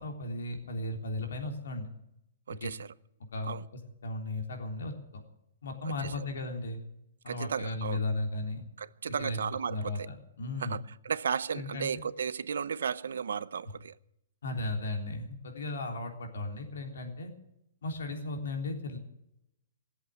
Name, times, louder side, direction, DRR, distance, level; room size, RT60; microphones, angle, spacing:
voice 1, 0.0-1.9 2.6-2.7 3.3-4.9 5.6-6.8 7.2-8.6 9.2-9.4 9.7-10.8 11.5-11.9 14.4-17.3 17.8-19.0, left 2 dB, 85° left, 3.5 m, -35 dB
voice 2, 2.5-2.9 3.4-3.7 6.0-6.2 7.3-8.0 8.8-10.1 10.6-13.9, right 7 dB, 85° right, 0.7 m, -34 dB
18.5 x 8.1 x 9.4 m
hypercardioid pair, 165°, 0 cm